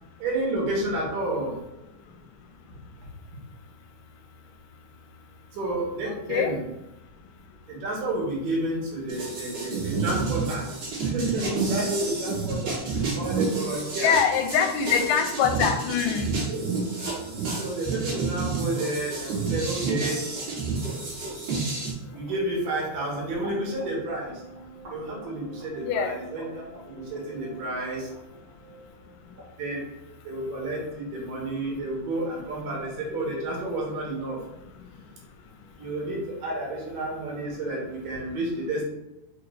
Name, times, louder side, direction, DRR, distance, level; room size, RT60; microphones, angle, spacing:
voice 1, 0.2-1.6 5.5-6.6 7.7-10.7 11.0-14.2 16.5-16.8 17.6-20.3 22.1-24.4 24.9-28.1 29.6-29.9 30.2-34.4 35.8-38.8, right 2 dB, 80° right, -3 dB, 2.9 m, -30 dB
voice 2, 6.1-6.5 13.2-13.3 14.0-16.3 25.8-26.1, left 7 dB, 85° left, 6 dB, 2.2 m, -24 dB
sound 1, 9.1-21.9, right 4 dB, 60° right, 2.8 m, -30 dB
sound 2, 22.1-29.5, right 1 dB, 40° right, 1.4 m, -47 dB
6.5 x 2.4 x 3.2 m, 0.90 s
omnidirectional pair, 3.7 m